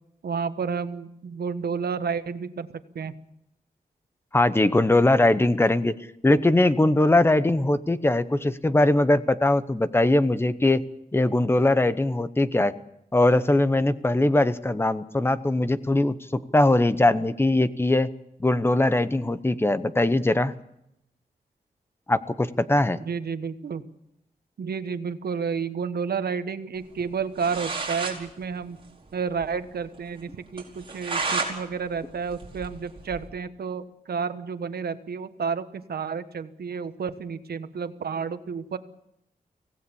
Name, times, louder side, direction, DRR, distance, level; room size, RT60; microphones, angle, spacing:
voice 1, 0.2-3.1 23.0-23.8 24.6-28.8 29.1-38.8, right 6 dB, 80° right, 11 dB, 1.3 m, -31 dB
voice 2, 4.3-5.9 6.2-10.8 11.1-12.7 13.1-18.1 18.4-20.5 22.1-23.0, left 2 dB, 15° left, 13 dB, 0.9 m, -21 dB
sound 1, 27.1-27.2 27.4-28.2 28.5-28.6 28.9-29.0 29.4-29.5 29.9-30.0 30.6-31.5 31.9-33.3, right 4 dB, 35° right, 4.9 m, -31 dB
24.5 x 17.0 x 7.1 m, 0.80 s
wide cardioid pair, 180°, 16 cm